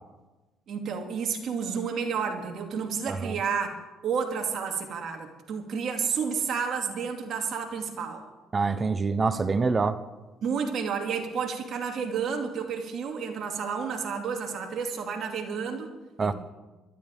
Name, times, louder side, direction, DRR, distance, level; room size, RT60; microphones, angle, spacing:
voice 1, 0.7-8.2 10.4-15.9 16.2-16.3, right 6 dB, 60° right, 3 dB, 2.6 m, -31 dB
voice 2, 3.1-3.4 8.5-10.0 16.2-16.3, right 4 dB, 35° right, 13 dB, 0.9 m, -26 dB
24.0 x 12.5 x 3.6 m, 1.1 s
supercardioid pair, 70°, 0 cm